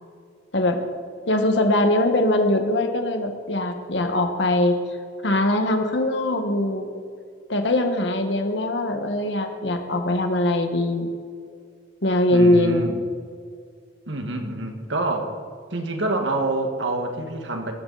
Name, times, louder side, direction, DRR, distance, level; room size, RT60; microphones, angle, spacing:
voice 1, 1.3-4.8 5.2-6.9 7.5-11.1 12.0-12.9, left 1 dB, 70° left, 5 dB, 1.7 m, -21 dB
voice 2, 12.3-13.0 14.1-15.3 15.7-17.7, right 2 dB, 75° right, 4 dB, 1.9 m, -26 dB
17.5 x 14.0 x 4.2 m, 2.2 s
head